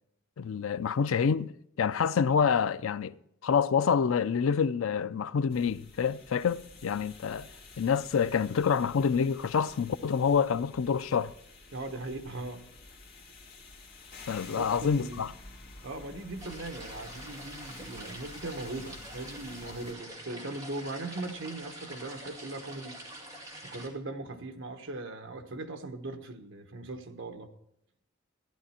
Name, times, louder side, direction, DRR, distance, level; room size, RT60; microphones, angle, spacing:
voice 1, 0.4-3.1 3.4-7.5 7.8-11.3 14.3-15.3, left 6 dB, 75° left, 0.4 m, -27 dB
sound 1, 5.5-19.9, left 3 dB, 45° left, 2.2 m, -50 dB
voice 2, 11.7-12.6 14.5-15.2 15.8-23.0 23.6-27.5, right 2 dB, 60° right, 1.2 m, -39 dB
sound 2, 16.4-23.9, right 1 dB, 15° right, 2.4 m, -46 dB
14.0 x 10.5 x 4.3 m
head